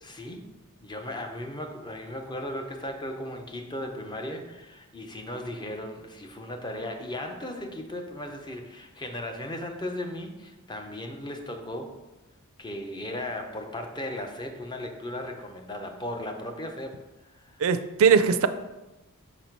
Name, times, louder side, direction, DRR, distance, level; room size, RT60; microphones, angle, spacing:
voice 1, 0.0-11.9 12.6-17.6, left 1 dB, 20° left, 4 dB, 0.6 m, -36 dB
voice 2, 17.6-18.5, right 6 dB, 65° right, 11 dB, 0.4 m, -20 dB
5.9 x 4.2 x 4.5 m, 1.0 s
head